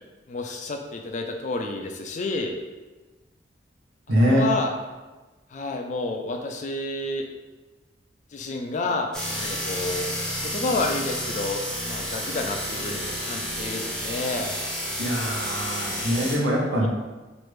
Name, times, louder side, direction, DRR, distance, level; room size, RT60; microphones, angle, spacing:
voice 1, 0.3-2.5 4.3-4.7 5.5-7.3 8.3-9.1 9.4-10.1 10.4-14.6 16.8-16.9, left 2 dB, 40° left, 3 dB, 0.3 m, -30 dB
voice 2, 4.1-4.4 15.0-16.9, equal, 85° right, -3 dB, 0.8 m, -23 dB
sound 1, 9.1-16.4, equal, 5° left, 0.7 m, -31 dB
3.2 x 2.5 x 3.1 m, 1.2 s
head